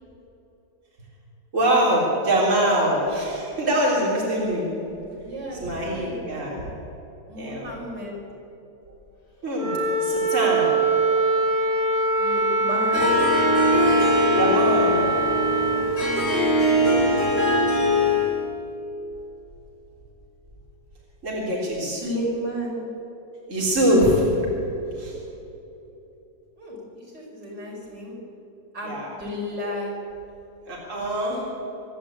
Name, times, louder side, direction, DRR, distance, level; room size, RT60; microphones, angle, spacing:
voice 1, 1.5-4.7 5.6-6.5 7.4-7.7 9.4-10.8 14.3-15.1 21.2-21.9 23.5-24.2 25.0-25.1 28.9-29.1 30.7-31.4, equal, 40° right, -4 dB, 4.0 m, -23 dB
voice 2, 5.2-6.7 7.3-8.2 12.2-13.2 21.8-22.8 26.6-28.2 28.7-30.0, equal, 70° right, -4 dB, 6.4 m, -33 dB
Wind instrument woodwind instrument, 9.5-15.9, right 3 dB, 70° left, 5.7 m, -23 dB
Harp, 12.9-18.4, left 1 dB, 30° left, 5.8 m, -21 dB
25.5 x 12.0 x 8.7 m, 3.0 s
omnidirectional pair, 1.9 m